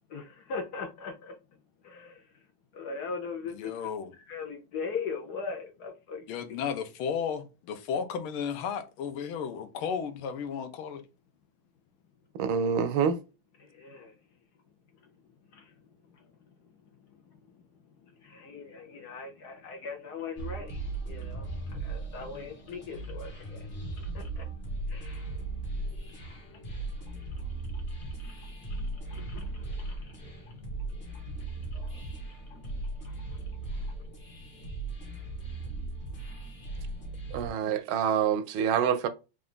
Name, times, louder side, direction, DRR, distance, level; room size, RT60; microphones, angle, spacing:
voice 1, 0.1-1.3 1.8-2.3 2.7-3.9 4.3-6.3 13.6-14.2 15.5-15.7 16.1-16.3 17.2-17.6 18.0-24.5 24.9-25.3 26.1-26.7 27.1-27.3 27.7-27.8 28.1-28.8 29.1-30.5 31.7-31.8 32.5-32.6, left 5 dB, 65° left, 1.1 m, -41 dB
voice 2, 3.4-4.1 6.3-11.0, left 7 dB, 80° left, 1.6 m, -34 dB
voice 3, 12.4-13.2 37.3-39.1, right 7 dB, 80° right, 1.4 m, -26 dB
sound 1, 20.4-37.5, right 2 dB, 35° left, 1.0 m, -37 dB
4.5 x 2.6 x 3.6 m
omnidirectional pair, 2.3 m